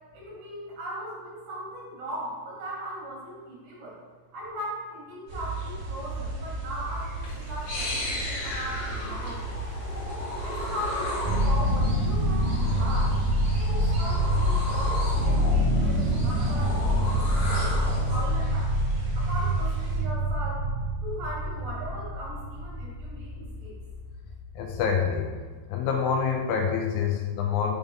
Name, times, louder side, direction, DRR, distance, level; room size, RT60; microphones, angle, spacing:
voice 1, 0.1-3.9 4.3-9.6 10.4-13.2 13.5-18.7 19.2-20.6 21.0-23.7, right 1 dB, 85° right, -5 dB, 3.5 m, -38 dB
sound 1, 5.3-20.0, right 2 dB, 65° right, 3.2 m, -37 dB
sound 2, 7.2-18.2, left 1 dB, 45° left, 2.4 m, -35 dB
sound 3, 11.2-25.2, equal, 40° right, 2.2 m, -26 dB
voice 2, 24.6-25.3 25.7-27.7, left 7 dB, 80° left, 1 dB, 1.8 m, -26 dB
7.1 x 3.5 x 3.7 m, 1.4 s
omnidirectional pair, 3.8 m